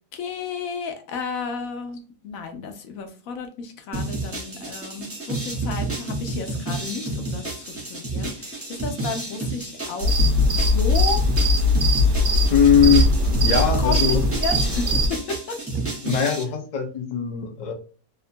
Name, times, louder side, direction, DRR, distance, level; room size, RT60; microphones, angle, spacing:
voice 1, 0.1-11.2 13.8-15.6, left 5 dB, 75° left, 6 dB, 1.0 m, -32 dB
sound 1, 3.9-16.4, right 2 dB, 15° right, 0.5 m, -31 dB
sound 2, 10.0-15.1, left 1 dB, 75° right, 0.4 m, -20 dB
voice 2, 12.5-13.2 13.4-14.2 16.0-17.7, left 8 dB, 60° left, 3 dB, 0.4 m, -20 dB
2.8 x 2.2 x 2.5 m, 0.37 s
omnidirectional pair, 1.5 m